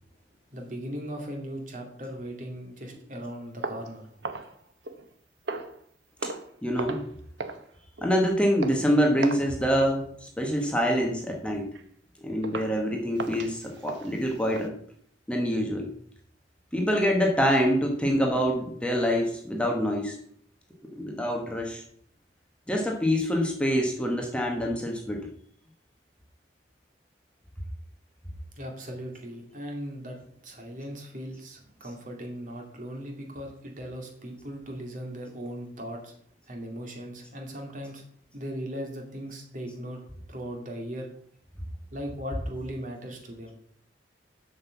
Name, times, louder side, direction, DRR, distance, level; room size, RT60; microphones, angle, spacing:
voice 1, 0.5-4.0 28.6-30.2 30.4-36.1 36.5-38.0 38.3-40.0 40.3-41.1 41.9-43.5, equal, 45° right, 2 dB, 2.3 m, -38 dB
sound 1, 3.6-5.1 5.5-5.8 6.2-6.5 6.8-7.1 7.4-7.6 8.0-8.2 8.6-8.8 9.2-9.5 9.8-10.0 10.4-10.7 11.1-11.2 11.7-11.8 12.4-12.8 13.2-14.7, right 3 dB, 85° right, 1.0 m, -37 dB
voice 2, 6.6-7.1 8.0-11.6 12.2-14.8 15.3-15.9 16.7-20.2 20.9-21.8 22.7-25.2, equal, 5° left, 0 dB, 1.3 m, -25 dB
7.8 x 6.5 x 6.9 m, 0.64 s
head